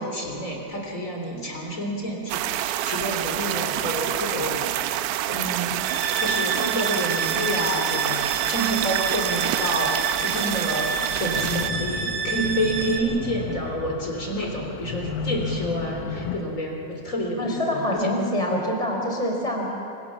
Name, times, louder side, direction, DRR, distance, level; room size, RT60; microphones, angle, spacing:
voice 1, 0.0-4.7 5.3-10.9 11.2-18.1, equal, 20° left, 1 dB, 2.5 m, -29 dB
sound 1, 2.3-11.7, right 13 dB, 85° right, 2.5 m, -27 dB
sound 2, 5.8-13.0, right 6 dB, 65° right, 4.0 m, -29 dB
sound 3, 11.3-16.4, left 6 dB, 85° left, 3.9 m, -32 dB
voice 2, 17.4-19.7, left 1 dB, 10° right, 1 dB, 2.4 m, -25 dB
29.0 x 24.5 x 7.3 m, 2.9 s
omnidirectional pair, 5.9 m